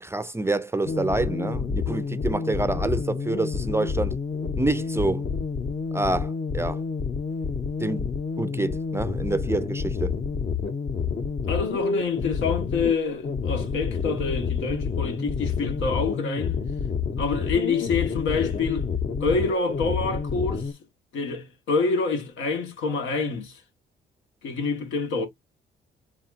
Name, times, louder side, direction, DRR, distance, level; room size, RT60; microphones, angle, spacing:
voice 1, 0.0-4.1 4.6-5.3 5.9-6.8 7.8-8.1 8.4-10.2, right 2 dB, 15° right, 0.4 m, -27 dB
sound 1, 0.8-20.7, left 5 dB, 40° left, 0.7 m, -29 dB
voice 2, 11.5-16.6 17.2-18.9 19.2-20.7 21.1-23.6 24.4-25.3, left 4 dB, 80° left, 1.5 m, -27 dB
4.1 x 3.7 x 2.5 m
cardioid pair, 90°, 20 cm